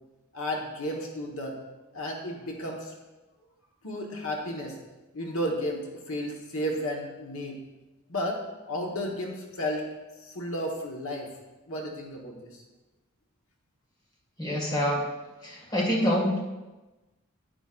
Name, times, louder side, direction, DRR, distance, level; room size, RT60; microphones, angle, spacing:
voice 1, 0.3-1.6 1.9-2.9 3.8-4.8 5.1-7.6 8.1-9.9 10.2-11.3 11.7-12.6, equal, 75° left, 0 dB, 1.4 m, -33 dB
voice 2, 14.4-15.1 15.4-16.4, equal, 20° left, -2 dB, 1.9 m, -26 dB
10.0 x 10.0 x 2.5 m, 1.1 s
head